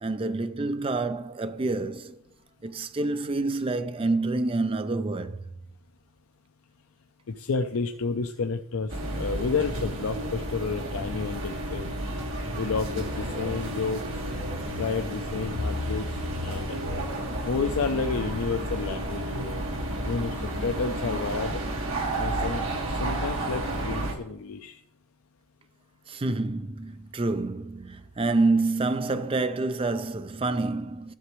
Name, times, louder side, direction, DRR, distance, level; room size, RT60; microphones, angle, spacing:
voice 1, 0.0-2.2 2.6-5.4 26.1-31.1, right 3 dB, 25° right, 0.4 m, -27 dB
voice 2, 7.3-11.9 12.6-14.2 14.8-16.1 16.4-16.8 17.4-19.6 20.1-21.6 22.2-24.8, left 4 dB, 75° left, 0.5 m, -30 dB
sound 1, 8.9-24.1, right 1 dB, 70° right, 1.7 m, -31 dB
13.0 x 6.8 x 3.1 m
head